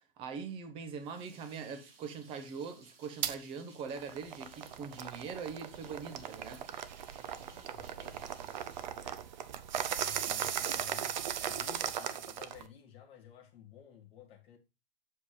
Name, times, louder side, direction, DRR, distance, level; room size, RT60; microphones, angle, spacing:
voice 1, 0.2-6.6, right 5 dB, 20° right, 0.9 m, -42 dB
sound 1, 0.9-9.7, right 4 dB, 70° right, 3.2 m, -60 dB
sound 2, 3.2-3.4 3.9-12.7, right 9 dB, 50° right, 0.8 m, -37 dB
voice 2, 7.2-8.2 9.0-9.5 9.9-11.2 11.4-14.6, left 9 dB, 20° left, 1.6 m, -54 dB
7.0 x 5.1 x 4.9 m
hypercardioid pair, 155°, 30 cm